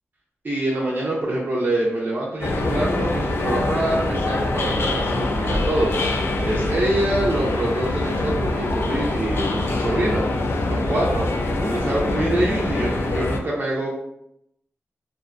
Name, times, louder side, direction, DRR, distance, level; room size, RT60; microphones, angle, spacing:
voice 1, 0.4-10.2 10.7-11.3 11.6-14.0, right 1 dB, 40° right, -5 dB, 0.5 m, -25 dB
sound 1, 2.4-13.4, left 2 dB, 65° left, 0.3 m, -24 dB
2.6 x 2.1 x 2.4 m, 0.79 s
wide cardioid pair, 100°, 5 cm